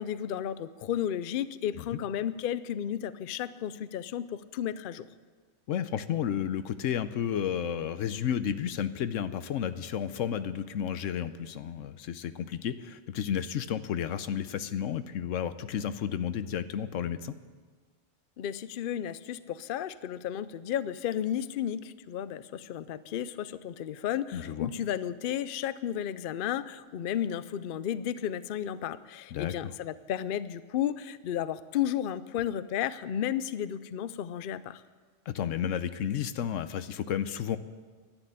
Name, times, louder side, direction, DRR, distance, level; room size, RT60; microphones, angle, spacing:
voice 1, 0.0-5.1 18.4-34.8, left 10 dB, 60° left, 15 dB, 0.6 m, -33 dB
voice 2, 5.7-17.3 24.3-24.7 29.3-29.7 35.3-37.6, left 9 dB, 90° left, 12 dB, 1.0 m, -32 dB
11.5 x 9.1 x 9.9 m, 1.5 s
omnidirectional pair, 1.3 m